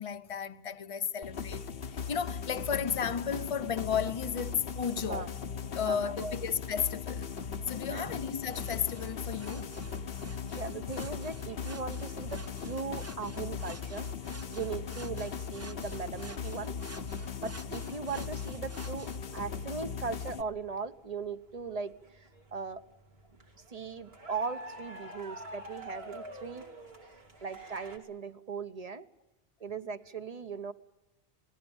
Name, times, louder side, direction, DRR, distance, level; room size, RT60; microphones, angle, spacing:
voice 1, 0.0-1.6 2.1-5.3 5.7-7.3 7.7-9.8 25.0-25.1, left 7 dB, 35° left, 0.9 m, -33 dB
sound 1, 1.2-20.4, left 6 dB, 65° left, 1.2 m, -39 dB
voice 2, 5.8-6.3 7.9-8.1 10.3-14.1 14.5-16.7 17.4-22.8 23.7-26.6 27.4-29.0 29.6-30.7, right 5 dB, 40° right, 1.2 m, -39 dB
sound 2, 8.2-28.0, right 1 dB, 75° right, 3.0 m, -52 dB
sound 3, 8.4-19.2, right 2 dB, 15° right, 0.7 m, -51 dB
27.5 x 19.0 x 7.2 m
omnidirectional pair, 1.0 m